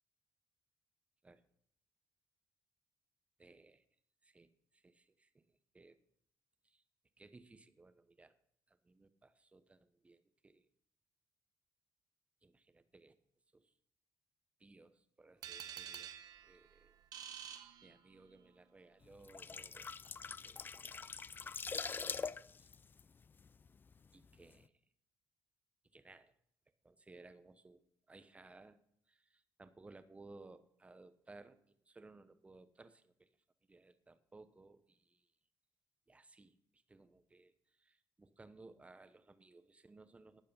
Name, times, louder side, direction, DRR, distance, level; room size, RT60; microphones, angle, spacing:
voice 1, 3.4-3.8 4.2-6.0 6.6-6.8 7.2-8.3 8.7-10.7 12.4-13.2 13.5-13.7 14.6-16.1 16.4-16.9 17.8-21.2 21.9-22.7 24.1-24.7 25.9-26.3 26.8-27.8 28.1-28.8 29.1-33.3 33.7-35.3 36.1-36.5 36.9-37.5 37.8-40.4, right 3 dB, 20° right, 11 dB, 0.9 m, -60 dB
sound 1, 15.4-18.5, right 9 dB, 70° right, 1.1 m, -49 dB
sound 2, 19.1-23.9 24.2-24.4, left 5 dB, 30° left, 0.4 m, -44 dB
12.5 x 8.5 x 5.4 m, 0.69 s
cardioid pair, 95°, 7 cm